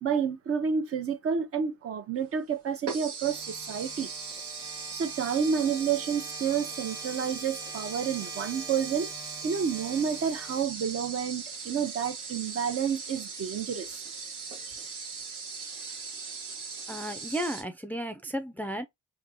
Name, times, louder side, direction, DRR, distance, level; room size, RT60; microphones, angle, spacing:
voice 1, 0.0-4.1 4.9-9.1 9.4-14.0 14.7-14.8, right 7 dB, 50° right, 0.7 m, -30 dB
sound 1, 2.2-2.3 2.9-17.6, right 5 dB, 85° right, 1.2 m, -39 dB
sound 2, 3.2-11.2, right 2 dB, 10° right, 0.8 m, -46 dB
voice 2, 16.9-18.9, equal, 5° left, 0.4 m, -33 dB
3.6 x 2.7 x 2.7 m
cardioid pair, 90°, 30 cm